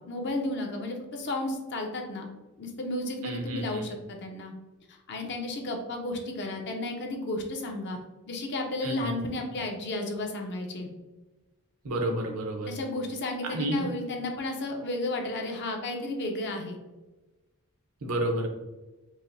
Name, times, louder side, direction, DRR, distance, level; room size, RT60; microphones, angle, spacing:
voice 1, 0.0-2.3 2.6-4.5 4.9-8.0 8.3-10.9 12.7-16.8, left 2 dB, 55° left, 2 dB, 0.6 m, -33 dB
voice 2, 3.2-3.8 8.8-9.2 11.8-12.7 13.4-13.8 18.0-18.5, right 1 dB, 75° right, 2 dB, 0.7 m, -30 dB
4.7 x 2.0 x 2.6 m, 1.1 s
head